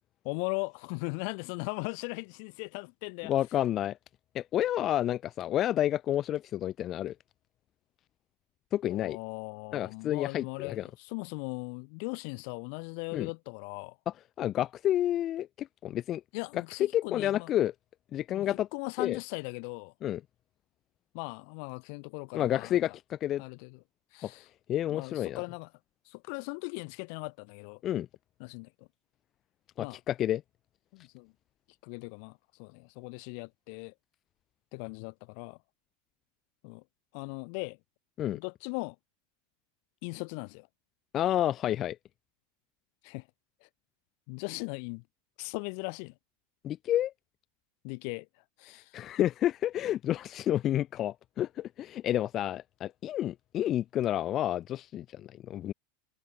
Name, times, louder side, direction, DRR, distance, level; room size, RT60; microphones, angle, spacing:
voice 1, 0.2-3.3 8.8-14.0 16.3-17.5 18.3-19.9 21.1-22.8 23.4-23.8 24.1-24.5 24.9-25.7 26.1-27.8 28.4-28.9 29.8-30.0 30.9-31.3 31.8-33.9 34.7-35.6 36.6-36.8 37.1-37.8 38.3-39.0 40.0-40.7 43.0-43.3 43.6-43.7 44.3-45.0 45.4-46.1 47.8-48.3 48.6-49.0, left 40 dB or more, 60° left, 7.9 m, -39 dB
voice 2, 3.2-4.0 4.3-7.1 8.7-9.2 9.7-10.9 13.1-13.3 14.4-16.2 16.9-17.7 18.1-18.7 19.0-19.2 20.0-20.2 22.3-23.4 24.2-24.3 24.7-25.4 27.8-28.1 29.8-30.4 38.2-38.4 41.1-42.0 46.6-47.1 48.9-55.7, left 12 dB, 40° left, 5.1 m, -30 dB
hypercardioid pair, 90°, 0 cm